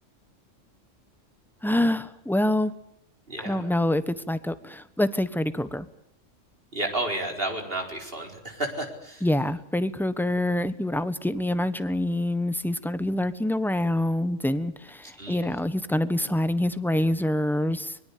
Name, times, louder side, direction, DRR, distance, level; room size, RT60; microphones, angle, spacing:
voice 1, 1.6-2.7 3.4-5.8 9.2-17.9, left 1 dB, ahead, 12 dB, 1.2 m, -26 dB
voice 2, 3.3-3.7 6.7-9.3 15.2-15.5, right 2 dB, 50° right, 3 dB, 4.7 m, -32 dB
24.5 x 22.5 x 8.6 m, 0.72 s
omnidirectional pair, 1.3 m